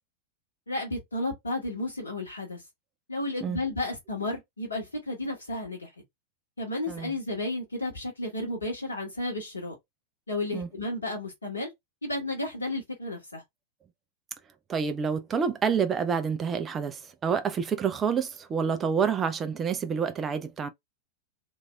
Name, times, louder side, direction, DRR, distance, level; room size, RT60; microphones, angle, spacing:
voice 1, 0.7-2.6 3.1-5.9 6.6-9.8 10.3-11.7 12.0-13.4, left 2 dB, 75° left, 1.0 m, -32 dB
voice 2, 14.7-20.7, right 6 dB, 20° right, 0.6 m, -28 dB
3.1 x 2.6 x 2.3 m
figure-of-eight pair, 90°, 0 cm